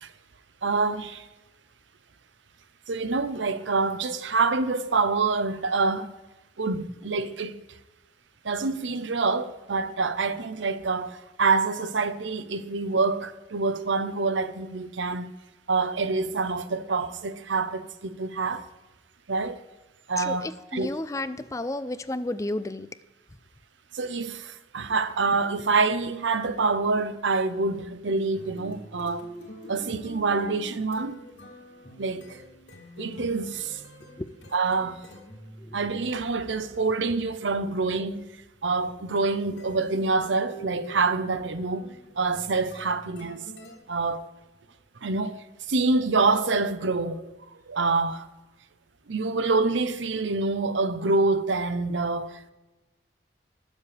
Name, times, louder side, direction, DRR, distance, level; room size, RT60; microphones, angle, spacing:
voice 1, 0.6-1.2 2.9-6.1 6.6-7.6 8.4-15.3 15.7-18.7 19.3-19.6 20.1-20.9 23.9-29.3 29.7-31.1 32.0-32.4 33.0-33.8 34.5-35.1 35.7-38.3 38.6-41.9 42.2-43.4 43.9-44.3 45.0-47.2 47.7-48.3 49.1-52.5, right 3 dB, 90° right, 0.8 m, -26 dB
voice 2, 20.2-22.9 34.2-34.3 35.6-35.8, left 2 dB, 15° left, 0.4 m, -32 dB
sound 1, 28.3-43.8, equal, 85° left, 2.8 m, -46 dB
20.5 x 7.4 x 3.4 m
head